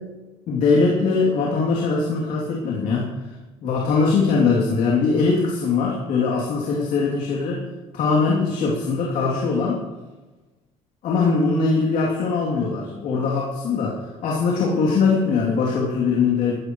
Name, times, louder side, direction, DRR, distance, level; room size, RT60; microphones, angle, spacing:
voice 1, 0.5-3.3 3.6-7.6 7.9-9.8 11.0-16.5, left 4 dB, 70° left, -3 dB, 3.0 m, -21 dB
19.0 x 14.5 x 3.2 m, 1.2 s
cardioid pair, 100°, 13 cm